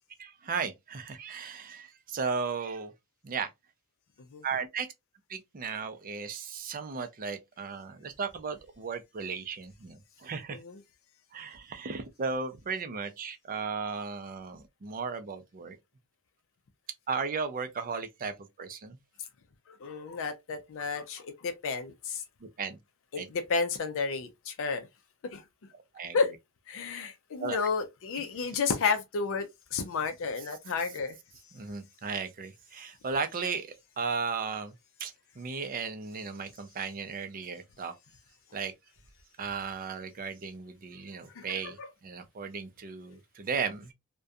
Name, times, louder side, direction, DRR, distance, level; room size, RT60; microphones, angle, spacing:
voice 1, 0.2-2.9 3.2-3.5 4.4-4.9 5.3-10.6 11.3-15.8 17.1-19.0 22.4-22.8 23.2-23.3 25.9-26.2 27.4-27.6 28.4-28.5 31.5-34.7 35.0-37.9 38.5-38.7 39.4-43.9, right 5 dB, 40° right, 0.4 m, -35 dB
voice 2, 19.7-22.2 23.1-24.9 25.2-25.4 26.1-26.3 26.7-31.2 41.4-41.5 41.8-41.9, left 5 dB, 65° left, 0.4 m, -31 dB
2.4 x 2.2 x 2.5 m
head